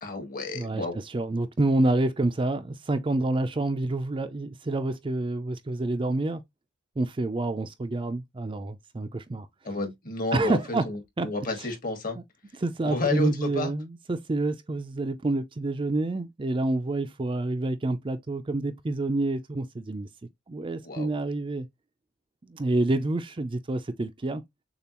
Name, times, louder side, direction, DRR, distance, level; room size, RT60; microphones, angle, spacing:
voice 1, 0.0-1.0 9.6-12.2 12.8-13.7 20.8-21.1, left 2 dB, 45° left, 1.5 m, -31 dB
voice 2, 0.5-6.4 7.0-9.5 10.3-10.9 11.2-11.3 11.6-11.7 12.2-12.3 12.6-20.1 20.5-21.7 22.4-24.4, right 2 dB, 25° right, 0.4 m, -28 dB
6.8 x 2.4 x 2.9 m
head